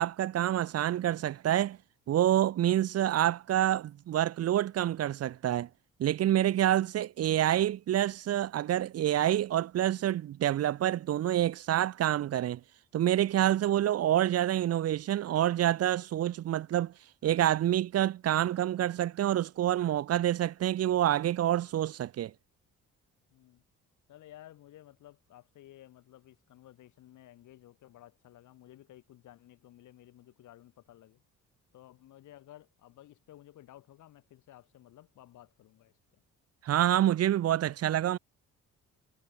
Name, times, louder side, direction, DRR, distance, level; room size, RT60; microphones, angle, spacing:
voice 1, 0.0-1.8 2.1-5.7 6.0-12.6 12.9-16.9 17.2-22.3 36.6-38.2, right 12 dB, 55° right, 0.6 m, -27 dB
voice 2, 23.3-23.6 24.1-31.2 31.7-35.9, left 13 dB, 75° left, 2.0 m, -55 dB
cardioid pair, 90°, 30 cm